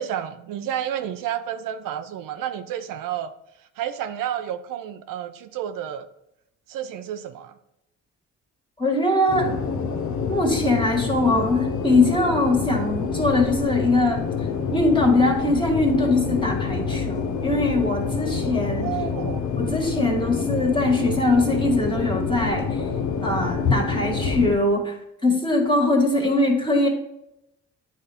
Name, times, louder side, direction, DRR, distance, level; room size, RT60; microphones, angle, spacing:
voice 1, 0.0-3.3 3.8-6.1 6.7-7.5 18.8-19.5 20.3-20.6 26.2-26.3, right 10 dB, 85° right, 9 dB, 0.6 m, -31 dB
voice 2, 8.8-9.5 10.3-14.2 14.7-18.9 19.6-22.8 23.2-25.0 25.2-26.9, left 2 dB, 15° left, 1 dB, 1.8 m, -21 dB
sound 1, 9.3-24.6, left 5 dB, 65° left, 0.8 m, -27 dB
9.2 x 4.1 x 3.5 m, 0.82 s
cardioid pair, 75°, 32 cm